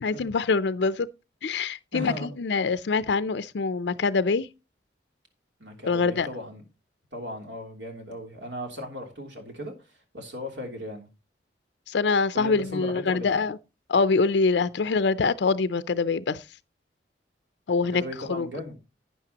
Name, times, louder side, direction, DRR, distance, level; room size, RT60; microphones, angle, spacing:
voice 1, 0.0-1.1 1.4-4.5 5.9-6.3 11.9-13.6 13.9-16.4 17.7-18.0 18.3-18.5, left 4 dB, 75° left, 0.5 m, -24 dB
voice 2, 1.9-2.3 5.6-6.6 7.1-9.7 10.1-11.1 12.3-13.3 17.9-18.8, left 1 dB, 90° right, 3.1 m, -37 dB
12.0 x 9.4 x 2.9 m
head